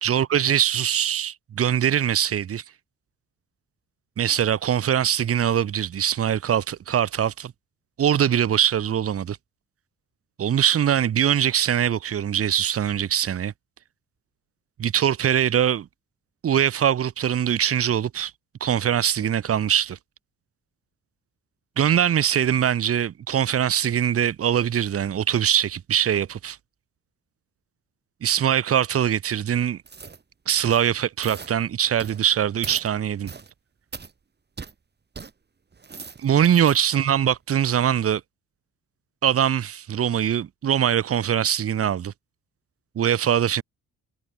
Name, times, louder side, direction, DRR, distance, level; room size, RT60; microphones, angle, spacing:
voice 1, 0.0-2.6 4.2-7.5 8.0-9.4 10.4-13.5 14.8-15.9 16.4-18.3 18.6-20.0 21.8-26.6 28.2-29.8 30.5-33.3 36.2-38.2 39.2-42.1 42.9-43.6, right 9 dB, 50° right, 1.3 m, -22 dB
sound 1, 29.8-30.2 30.6-30.9 31.2-31.5 32.0-32.2 32.6-32.9 33.2-33.5 33.9-34.1 34.6-34.7 35.1-35.3 35.7-36.8 37.2-37.4, right 5 dB, 35° right, 6.9 m, -40 dB
cardioid pair, 90°, 30 cm